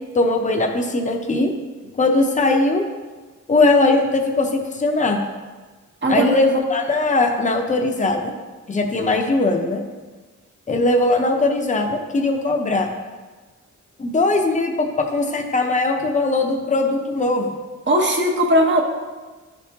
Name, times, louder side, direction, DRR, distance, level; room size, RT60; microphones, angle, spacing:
voice 1, 0.1-1.5 2.0-2.8 3.5-5.2 6.1-8.3 8.7-9.8 10.7-12.9 14.0-17.5, left 2 dB, 25° left, 3 dB, 0.6 m, -20 dB
voice 2, 6.0-6.4 17.9-18.8, right 1 dB, 40° right, 2 dB, 0.8 m, -18 dB
10.5 x 3.6 x 2.8 m, 1.3 s
wide cardioid pair, 130°, 30 cm